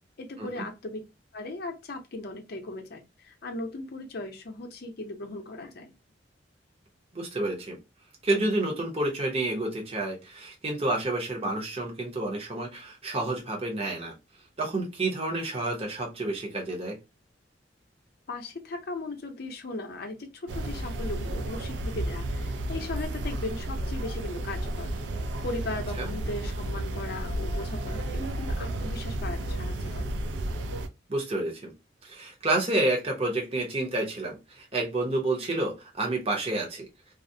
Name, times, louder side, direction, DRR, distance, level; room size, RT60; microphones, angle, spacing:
voice 1, 0.2-1.0 1.3-5.9 18.3-24.9 25.4-30.0, left 2 dB, 55° left, 0.5 m, -37 dB
voice 2, 7.1-7.8 8.2-14.1 14.6-17.0 26.0-26.1 31.1-31.7 32.0-36.9, right 2 dB, 35° right, 0.7 m, -29 dB
sound 1, 20.5-30.9, right 1 dB, 75° right, 0.4 m, -32 dB
2.4 x 2.0 x 2.6 m
head